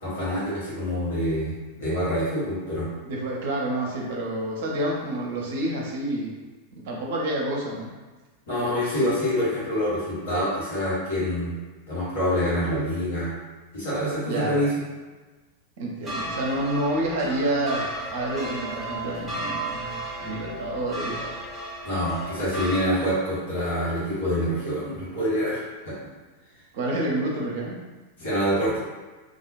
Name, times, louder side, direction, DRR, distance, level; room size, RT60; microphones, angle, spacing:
voice 1, 0.0-2.9 8.5-11.5 11.9-13.3 13.7-14.7 21.8-25.9 28.2-28.8, equal, 55° left, -9 dB, 1.3 m, -26 dB
voice 2, 3.0-6.3 6.8-7.9 8.6-9.1 14.3-14.6 15.8-21.3 26.7-27.8, right 1 dB, 55° right, -2 dB, 0.5 m, -29 dB
sound 1, 16.0-22.9, right 1 dB, 5° right, 0.7 m, -34 dB
2.4 x 2.1 x 2.5 m, 1.3 s
figure-of-eight pair, 90°, 0 cm